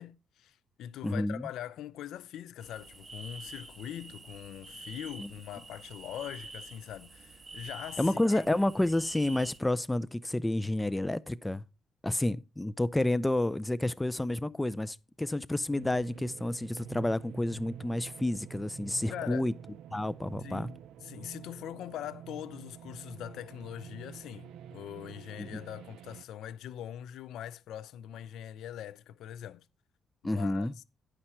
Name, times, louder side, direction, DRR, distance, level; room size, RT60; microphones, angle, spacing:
voice 1, 0.0-8.4 12.1-12.2 19.1-19.5 20.4-29.6 30.2-30.8, left 11 dB, 80° left, 0.4 m, -42 dB
voice 2, 1.0-1.5 5.2-5.3 8.0-11.6 12.0-19.5 19.9-20.7 25.4-25.6 30.2-30.7, left 1 dB, 10° left, 0.4 m, -30 dB
sound 1, 2.6-9.6, right 3 dB, 25° right, 1.3 m, -48 dB
sound 2, 15.7-26.2, right 9 dB, 85° right, 0.4 m, -48 dB
10.0 x 5.8 x 4.2 m
cardioid pair, 90°, 0 cm